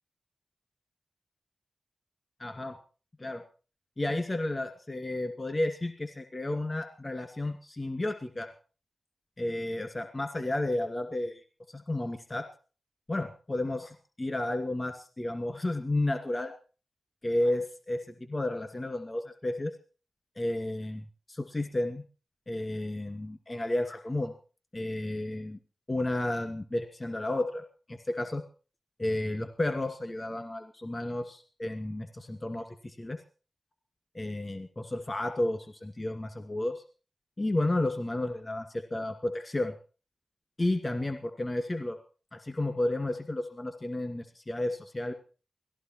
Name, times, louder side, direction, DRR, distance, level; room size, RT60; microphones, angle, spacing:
voice 1, 2.4-2.8 3.2-3.4 4.0-8.5 9.4-11.4 11.7-12.5 13.1-16.5 17.2-19.7 20.4-22.0 22.5-24.3 24.7-25.6 25.9-28.4 29.0-33.2 34.1-36.8 37.4-39.7 40.6-42.0 42.3-45.1, left 1 dB, 35° left, 6 dB, 2.4 m, -32 dB
18.0 x 15.5 x 4.6 m, 0.38 s
cardioid pair, 45°, 0 cm